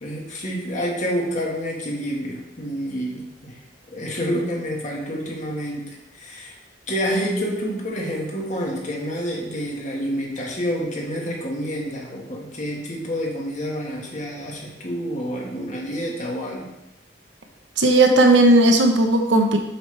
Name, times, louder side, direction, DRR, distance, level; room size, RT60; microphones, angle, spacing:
voice 1, 0.0-3.5 3.9-6.5 6.9-16.7, equal, 40° left, -2 dB, 1.5 m, -28 dB
voice 2, 17.8-19.6, right 2 dB, 75° right, 4 dB, 1.0 m, -15 dB
7.7 x 5.2 x 3.3 m, 0.95 s
head